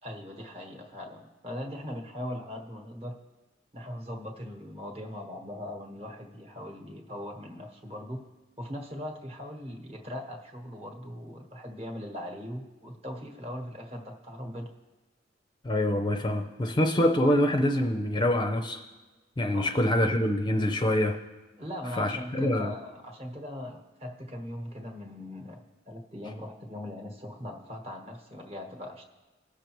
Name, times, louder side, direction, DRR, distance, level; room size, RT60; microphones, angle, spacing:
voice 1, 0.0-3.2 3.7-8.2 8.6-14.7 19.5-19.7 21.6-29.0, left 1 dB, 35° right, 2 dB, 1.3 m, -40 dB
voice 2, 15.6-18.8 19.4-21.2 22.0-22.7, left 1 dB, 25° left, 4 dB, 0.6 m, -25 dB
18.5 x 6.6 x 3.1 m, 1.2 s
head